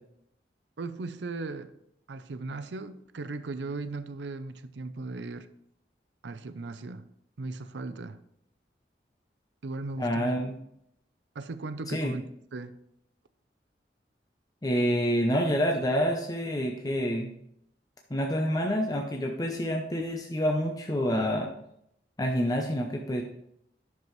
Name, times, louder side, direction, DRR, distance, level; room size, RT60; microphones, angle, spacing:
voice 1, 0.8-1.7 2.1-5.5 6.2-7.1 7.4-8.2 9.6-10.3 11.3-12.2 12.5-12.8, right 3 dB, 90° right, 0.5 m, -37 dB
voice 2, 10.0-10.5 11.9-12.1 14.6-17.3 18.1-21.5 22.2-23.2, equal, 20° left, 0.6 m, -27 dB
10.5 x 6.8 x 3.2 m
head